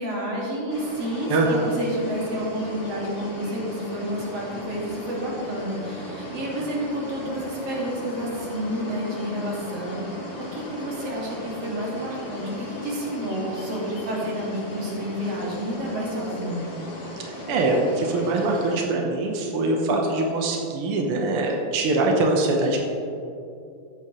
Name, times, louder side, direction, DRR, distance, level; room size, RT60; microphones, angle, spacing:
voice 1, 0.0-10.0 10.4-16.6, equal, 45° right, -4 dB, 3.1 m, -30 dB
sound 1, 0.7-18.9, left 1 dB, 30° left, 1.3 m, -37 dB
voice 2, 1.3-1.7 17.2-22.8, right 2 dB, 75° right, 0 dB, 1.3 m, -23 dB
14.5 x 9.6 x 3.2 m, 2.6 s
omnidirectional pair, 4.1 m